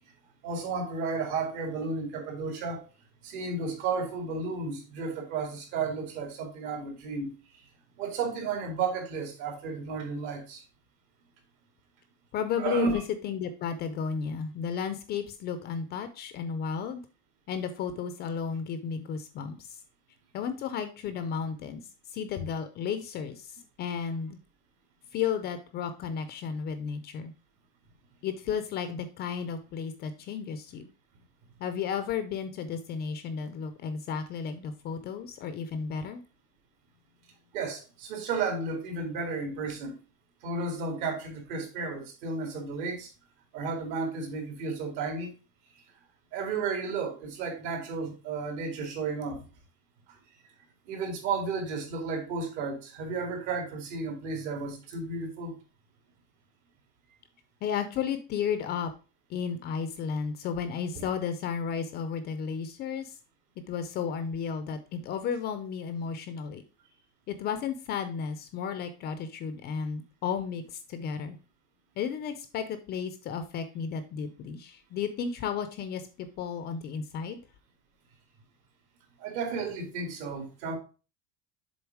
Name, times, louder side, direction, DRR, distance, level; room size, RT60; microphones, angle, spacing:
voice 1, 0.4-2.9 3.2-7.7 8.0-10.6 12.6-13.0 37.5-40.0 40.4-43.1 43.5-45.3 46.3-49.5 50.1-50.2 50.9-55.6 79.2-80.8, right 4 dB, 60° right, 2.5 m, -33 dB
voice 2, 12.3-17.0 17.5-19.8 20.3-21.8 22.1-24.4 25.1-27.3 28.2-30.9 31.6-36.2 57.6-58.9 59.3-63.1 63.7-66.6 67.3-71.4 72.0-77.4, left 7 dB, 30° left, 0.5 m, -33 dB
7.1 x 3.8 x 4.6 m
cardioid pair, 170°, 34 cm